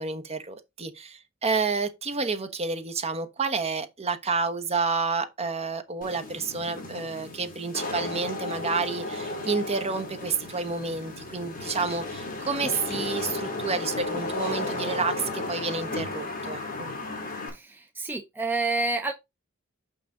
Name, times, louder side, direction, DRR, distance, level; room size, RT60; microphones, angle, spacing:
voice 1, 0.0-16.9, right 4 dB, 30° right, 1.0 m, -30 dB
Wind / Rain, 6.0-17.5, left 2 dB, 40° left, 2.6 m, -34 dB
voice 2, 17.5-19.1, right 3 dB, 10° right, 0.6 m, -29 dB
5.9 x 5.7 x 3.8 m
head